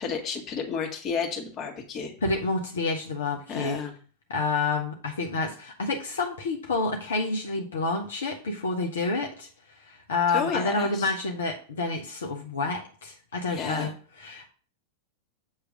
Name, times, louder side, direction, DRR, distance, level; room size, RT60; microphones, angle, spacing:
voice 1, 0.0-2.1 3.5-3.9 10.3-11.1 13.5-13.9, left 6 dB, 30° left, 2 dB, 1.6 m, -32 dB
voice 2, 2.2-3.8 4.3-9.5 9.8-13.9 14.2-14.5, left 3 dB, 65° left, 1 dB, 1.1 m, -28 dB
7.5 x 3.2 x 6.3 m, 0.40 s
figure-of-eight pair, 90°, 0 cm